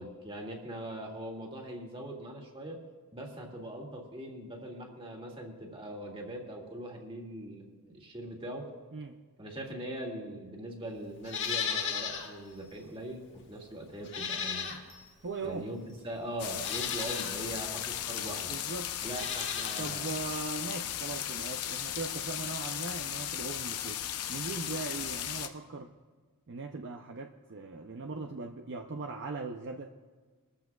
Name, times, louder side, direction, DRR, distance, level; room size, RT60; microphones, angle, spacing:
voice 1, 0.0-2.8 3.1-8.7 9.4-14.8 15.4-15.8 16.0-18.5 19.0-20.2, right 1 dB, 25° right, 0 dB, 2.2 m, -41 dB
Livestock farm animals working animals, 11.2-12.3 12.7-12.8 14.0-15.1 15.9-16.0 16.5-17.3 19.0-19.9 20.2-20.3, left 6 dB, 55° left, 1.7 m, -35 dB
voice 2, 15.2-15.7 18.5-18.9 19.8-24.0 24.3-25.9 26.5-29.9, right 3 dB, 55° right, 3 dB, 0.6 m, -39 dB
sound 1, 16.4-25.5, left 10 dB, 80° left, 0.8 m, -36 dB
22.0 x 14.0 x 2.4 m, 1.4 s
head